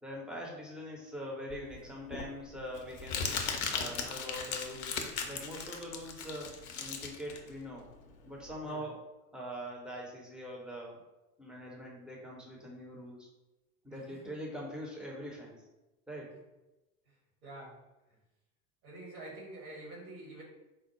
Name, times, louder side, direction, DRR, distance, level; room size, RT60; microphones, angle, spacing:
voice 1, 0.0-3.3 3.7-7.9 8.2-9.0 9.3-11.0 11.4-13.3 13.8-15.6 16.1-16.3, equal, ahead, -3 dB, 0.6 m, -43 dB
Crumpling crinkling, 1.5-8.6, left 6 dB, 45° left, 0.6 m, -38 dB
voice 2, 13.9-14.3 17.1-18.2 18.8-20.4, right 2 dB, 65° right, -2 dB, 1.4 m, -48 dB
4.4 x 2.0 x 3.0 m, 0.99 s
figure-of-eight pair, 80°, 47 cm